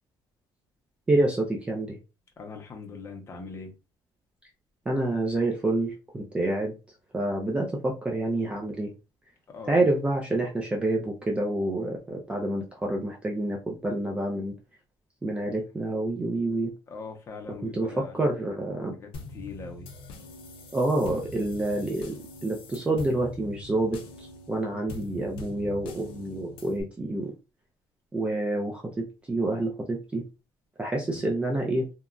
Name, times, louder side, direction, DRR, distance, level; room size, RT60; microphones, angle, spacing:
voice 1, 1.1-2.0 4.9-6.7 7.1-8.9 9.7-14.5 15.2-16.7 17.6-18.9 20.7-27.3 28.1-30.2 30.8-31.9, right 2 dB, 15° right, 0.4 m, -28 dB
voice 2, 2.4-3.8 9.5-9.8 16.9-18.2 18.9-19.9 24.7-24.8, left 4 dB, 30° left, 0.7 m, -41 dB
sound 1, 19.1-26.8, left 3 dB, 75° left, 0.6 m, -43 dB
2.8 x 2.2 x 2.4 m
cardioid pair, 160°, 9 cm